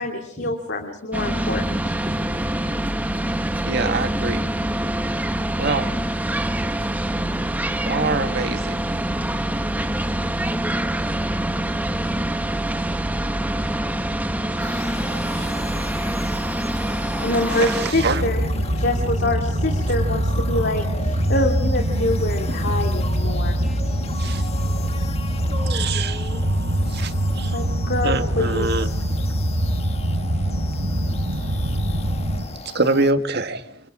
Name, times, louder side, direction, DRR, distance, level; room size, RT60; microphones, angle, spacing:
voice 1, 0.0-1.8 16.8-16.9 17.2-23.5 27.5-28.8, left 2 dB, 55° left, 2.8 m, -25 dB
sound 1, 1.1-17.9, right 1 dB, 10° right, 1.1 m, -25 dB
voice 2, 1.9-2.3 3.6-4.3 9.9-10.5 14.4-16.0 20.6-20.9 23.6-24.1 24.5-24.6 25.5-27.0 29.8-29.9 31.5-32.0, equal, 25° right, 3.4 m, -40 dB
voice 3, 3.6-4.4 5.6-5.9 7.8-8.8 14.9-15.5 17.5-18.2 24.2-24.4 25.7-26.2 26.9-27.6 28.0-28.9 31.3-31.6 32.6-33.6, right 3 dB, 55° right, 1.7 m, -25 dB
sound 2, 14.6-33.1, left 4 dB, 30° left, 1.5 m, -38 dB
sound 3, 17.9-32.4, right 1 dB, 85° right, 3.5 m, -23 dB
28.0 x 27.0 x 4.9 m
head